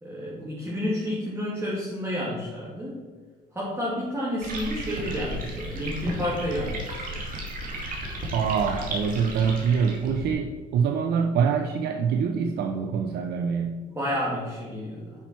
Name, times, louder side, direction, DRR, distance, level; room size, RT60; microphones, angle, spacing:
voice 1, 0.0-3.0 3.5-6.9 13.9-15.1, equal, 15° right, -7 dB, 2.7 m, -30 dB
sound 1, 4.4-10.3, right 1 dB, 55° right, 2.5 m, -34 dB
voice 2, 8.3-13.8, right 6 dB, 70° right, 5 dB, 0.7 m, -25 dB
10.5 x 5.7 x 4.6 m, 1.5 s
cardioid pair, 110°, 17 cm